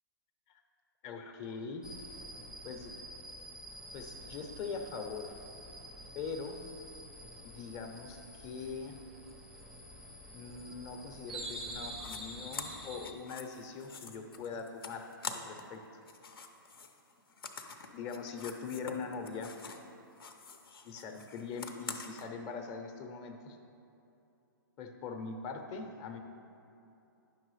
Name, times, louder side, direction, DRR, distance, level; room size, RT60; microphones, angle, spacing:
voice 1, 1.0-1.9 2.6-3.0 3.9-5.3 6.1-6.6 7.4-9.0 10.3-15.8 17.9-19.5 20.8-23.6 24.8-26.2, left 5 dB, 30° left, 5 dB, 0.7 m, -42 dB
sound 1, 1.8-13.1, right 1 dB, 5° right, 0.5 m, -47 dB
sound 2, 12.0-12.2 12.5-15.8 16.0-19.9 20.2-22.3, left 5 dB, 80° left, 0.7 m, -45 dB
9.9 x 6.1 x 3.2 m, 2.8 s
hypercardioid pair, 135°, 12 cm